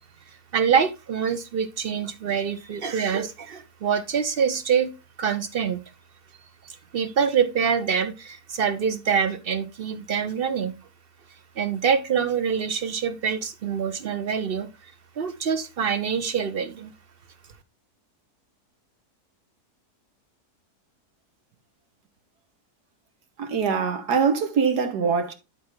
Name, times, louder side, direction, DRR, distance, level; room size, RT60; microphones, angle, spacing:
voice 1, 0.5-4.9 5.2-5.8 6.9-10.8 11.6-14.7 15.2-16.9, right 7 dB, 60° right, 0.6 m, -25 dB
voice 2, 23.4-25.3, right 6 dB, 90° right, 1.8 m, -23 dB
11.5 x 4.4 x 3.7 m
omnidirectional pair, 1.7 m